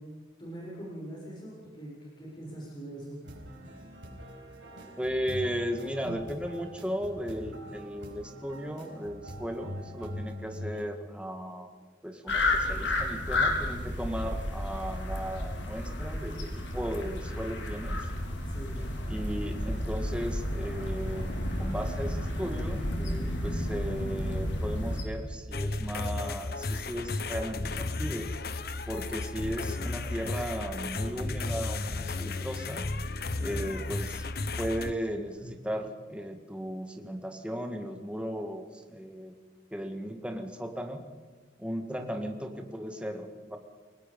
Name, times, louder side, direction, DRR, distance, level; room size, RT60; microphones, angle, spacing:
voice 1, 0.4-3.2 18.5-18.8 33.3-33.7 35.4-35.5 41.9-42.1, right 1 dB, 25° left, -5 dB, 6.6 m, -42 dB
sound 1, 3.2-10.8, equal, 90° right, 5.1 m, -43 dB
voice 2, 5.0-11.7 12.0-18.1 19.1-28.3 28.9-32.8 33.4-34.2 34.6-39.3 39.7-41.1 41.6-43.6, equal, 5° right, 5 dB, 1.8 m, -36 dB
sound 2, 12.3-25.0, left 1 dB, 75° left, 3.8 m, -32 dB
sound 3, 25.5-34.9, left 3 dB, 55° left, 0.9 m, -34 dB
29.5 x 18.5 x 5.4 m, 1.5 s
head